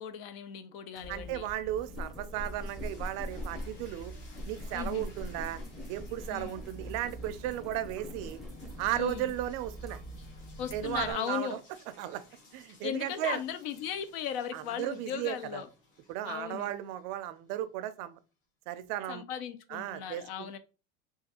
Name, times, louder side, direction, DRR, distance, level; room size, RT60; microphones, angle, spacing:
voice 1, 0.0-1.5 4.7-5.1 6.3-6.6 8.9-9.3 10.6-11.6 12.8-15.7 16.2-16.7 19.1-20.6, left 9 dB, 75° left, 0.6 m, -37 dB
sound 1, 1.0-11.1, equal, ahead, 0.6 m, -42 dB
voice 2, 1.1-4.1 4.5-5.6 5.9-8.4 8.8-10.0 10.7-11.6 12.0-12.2 12.5-13.4 14.5-15.6 16.1-18.2 18.7-19.2 19.7-20.6, right 13 dB, 55° right, 0.4 m, -35 dB
sound 2, 2.0-18.0, left 3 dB, 40° left, 1.4 m, -59 dB
3.0 x 2.3 x 2.8 m
supercardioid pair, 130°, 30 cm